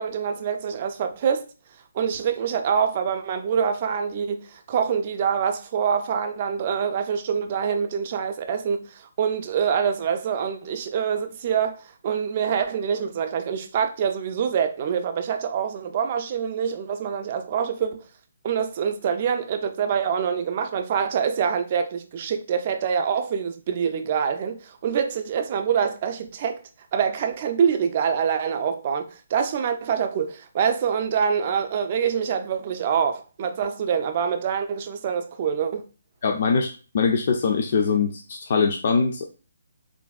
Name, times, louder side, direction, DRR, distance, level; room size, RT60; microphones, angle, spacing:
voice 1, 0.0-1.5 1.9-18.1 18.4-26.6 26.9-35.8, right 7 dB, 40° right, 0.4 m, -25 dB
voice 2, 36.2-39.3, left 5 dB, 50° left, 0.3 m, -22 dB
3.4 x 2.5 x 2.3 m
figure-of-eight pair, 145°, 0 cm